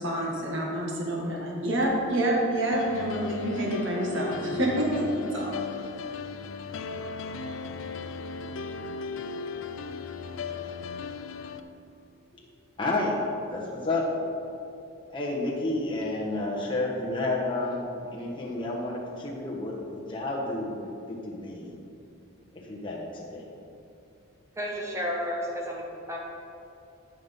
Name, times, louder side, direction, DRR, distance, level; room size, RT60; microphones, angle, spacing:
voice 1, 0.0-5.1 5.3-5.5, right 1 dB, 65° right, -3 dB, 1.8 m, -27 dB
sound 1, 2.7-11.6, left 4 dB, 65° left, 0.4 m, -36 dB
voice 2, 12.8-14.1 15.1-17.9 18.1-21.8 22.5-23.4, left 2 dB, 20° left, -3 dB, 1.3 m, -31 dB
voice 3, 24.6-26.2, equal, 15° right, -2 dB, 1.1 m, -32 dB
13.5 x 5.6 x 3.7 m, 2.7 s
head